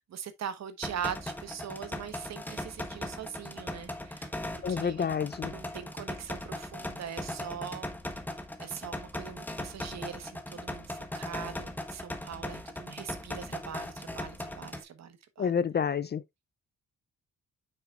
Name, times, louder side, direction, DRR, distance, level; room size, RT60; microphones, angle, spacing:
voice 1, 0.0-5.1 5.5-7.9 8.6-15.5, right 8 dB, 65° right, 1.2 m, -42 dB
sound 1, 0.8-14.8, left 1 dB, 5° left, 1.0 m, -39 dB
voice 2, 4.6-5.5 15.4-16.2, left 7 dB, 35° left, 0.4 m, -29 dB
8.1 x 6.3 x 2.4 m
wide cardioid pair, 160°, 29 cm